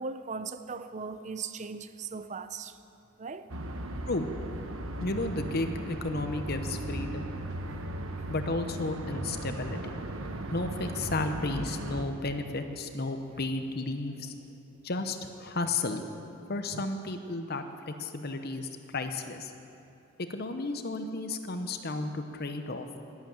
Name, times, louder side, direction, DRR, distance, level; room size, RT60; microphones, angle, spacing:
voice 1, 0.0-2.8 3.2-3.5 16.7-16.8, right 4 dB, 35° right, 0.6 m, -38 dB
sound 1, 3.5-12.0, right 1 dB, 85° right, 1.1 m, -37 dB
voice 2, 5.0-7.3 8.3-9.8 10.5-14.3 14.8-16.0 16.5-19.5 20.2-22.9, left 2 dB, 50° left, 0.9 m, -33 dB
12.0 x 12.0 x 8.8 m
head